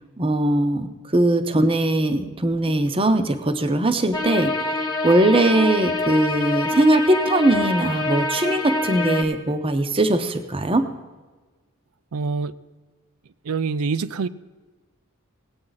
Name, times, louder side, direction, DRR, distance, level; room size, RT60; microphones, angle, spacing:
voice 1, 0.2-10.8, right 1 dB, 25° right, 8 dB, 0.7 m, -20 dB
sound 1, 4.1-9.2, left 2 dB, 20° left, 1.0 m, -25 dB
voice 2, 12.1-12.6 13.4-14.3, right 4 dB, 85° right, 14 dB, 0.5 m, -25 dB
18.5 x 8.6 x 4.0 m, 1.3 s
head